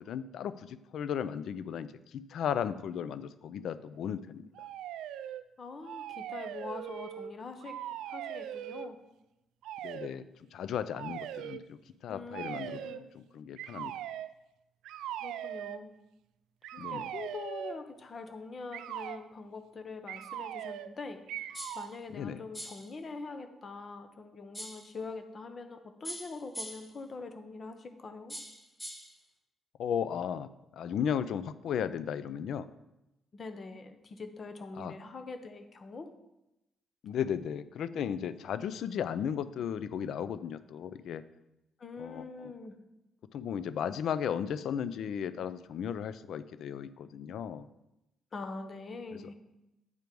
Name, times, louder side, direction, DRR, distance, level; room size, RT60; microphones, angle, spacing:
voice 1, 0.0-4.4 9.8-10.2 10.5-11.8 12.0-13.9 16.8-17.1 22.1-22.4 29.8-32.7 34.8-34.9 37.0-41.2 42.0-42.5 43.3-47.7, left 8 dB, 70° left, 14 dB, 0.4 m, -35 dB
sound 1, 4.5-5.4 5.8-7.3 7.6-8.9 9.6-10.1 10.9-11.6 12.3-13.0 13.6-14.3 14.8-15.8 16.6-17.8 18.7-19.2 20.1-20.9 21.3-21.9, right 11 dB, 90° right, 0.3 m, -40 dB
voice 2, 5.6-7.8 8.1-9.0 12.1-13.1 15.2-15.9 16.7-28.4 33.3-36.1 41.8-42.8 48.3-49.3, left 4 dB, 45° left, 7 dB, 1.0 m, -44 dB
sound 2, 21.5-21.9 22.5-22.9 24.5-24.9 26.0-26.9 28.3-29.1, equal, 10° left, 1.4 m, -42 dB
8.1 x 4.6 x 5.2 m, 0.91 s
cardioid pair, 90°, 0 cm